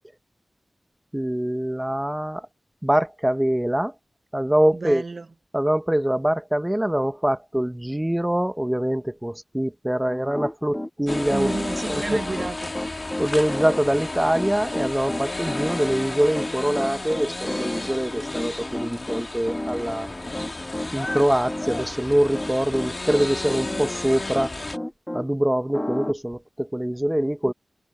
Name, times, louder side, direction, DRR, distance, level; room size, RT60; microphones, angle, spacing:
voice 1, 1.1-2.5 2.8-3.9 4.3-5.0 5.5-11.5 11.9-12.2 13.2-20.1 20.9-24.5 25.1-27.5, right 1 dB, 10° right, 0.9 m, -24 dB
voice 2, 4.7-5.3 11.3-12.7, right 3 dB, 55° right, 0.9 m, -31 dB
Piano, 10.1-25.3 25.7-26.1, left 1 dB, 15° left, 1.3 m, -32 dB
sound 1, 11.1-24.8, left 2 dB, 35° left, 1.4 m, -33 dB
wide cardioid pair, 75°, 0 cm